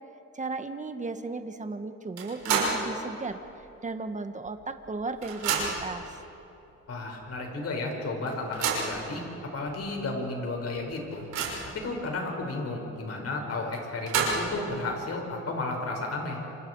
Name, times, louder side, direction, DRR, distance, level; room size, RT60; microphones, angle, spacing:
voice 1, 0.3-3.4 3.8-6.2, right 3 dB, 25° right, 8 dB, 1.6 m, -35 dB
sound 1, 2.2-2.9 3.3-3.4 4.5-4.6 4.8-6.0 6.7-6.8 7.2-7.3 8.3-9.0 9.7-9.8 10.2-10.3 10.8-11.8 13.7-14.6, right 5 dB, 85° right, 6.3 m, -29 dB
voice 2, 6.9-9.2 9.5-11.2 11.7-16.4, left 2 dB, 55° left, 1 dB, 6.1 m, -33 dB
28.5 x 27.0 x 4.9 m, 2.9 s
cardioid pair, 90°, 30 cm